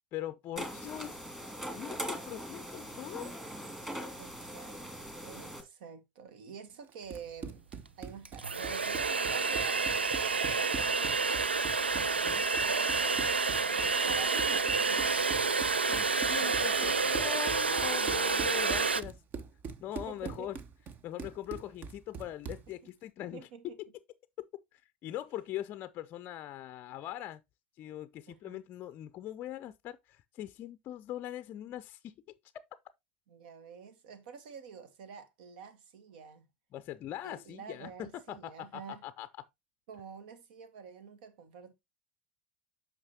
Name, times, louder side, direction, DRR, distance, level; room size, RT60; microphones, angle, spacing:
voice 1, 0.1-1.2 1.7-3.4 12.3-12.4 15.9-19.2 19.8-20.6 21.0-23.8 24.7-27.4 27.8-32.1 36.7-39.5, left 12 dB, 40° left, 0.5 m, -41 dB
sound 1, 0.6-5.6, equal, 10° right, 2.2 m, -41 dB
voice 2, 4.1-7.6 8.0-9.8 10.4-11.6 11.9-15.6 16.4-17.0 20.1-20.5 22.8-22.9 23.2-23.8 28.3-28.6 33.3-36.5 37.2-39.0 39.9-41.7, right 6 dB, 60° right, 1.2 m, -48 dB
Run, 6.9-22.7, right 5 dB, 35° right, 0.9 m, -44 dB
sound 2, 7.7-7.8 8.3-19.0, right 4 dB, 85° right, 0.4 m, -29 dB
8.6 x 5.9 x 2.8 m
figure-of-eight pair, 75°, 6 cm